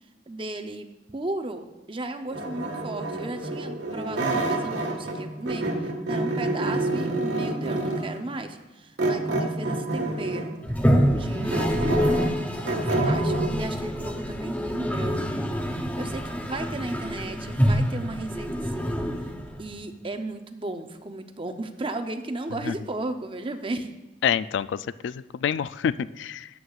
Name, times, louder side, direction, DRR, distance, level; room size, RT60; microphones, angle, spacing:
voice 1, 0.3-10.6 10.9-12.0 12.7-15.4 15.7-16.2 16.5-19.0 19.6-23.9, right 2 dB, 30° right, 7 dB, 0.6 m, -35 dB
sound 1, 2.3-5.2 5.5-8.2 9.0-10.6 11.0-13.5, right 2 dB, 85° right, 1.6 m, -27 dB
Toilet flush, 10.6-19.7, equal, 10° left, 0.7 m, -26 dB
voice 2, 24.2-26.5, left 8 dB, 80° left, 16 dB, 0.3 m, -27 dB
13.0 x 9.3 x 2.4 m, 1.0 s
head